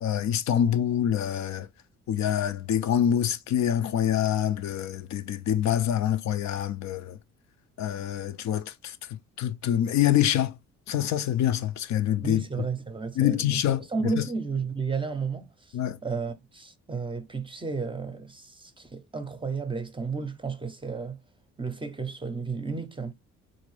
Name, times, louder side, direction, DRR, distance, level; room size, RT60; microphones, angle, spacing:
voice 1, 0.0-1.7 2.1-7.2 7.8-9.0 9.4-10.5 10.9-12.4 13.2-13.9 14.2-14.3 15.7-16.0, left 10 dB, 65° left, 0.5 m, -25 dB
voice 2, 12.2-13.6 13.9-15.5 16.0-21.2 21.6-23.1, right 4 dB, 15° right, 0.6 m, -32 dB
3.8 x 2.6 x 3.1 m
cardioid pair, 90°, 30 cm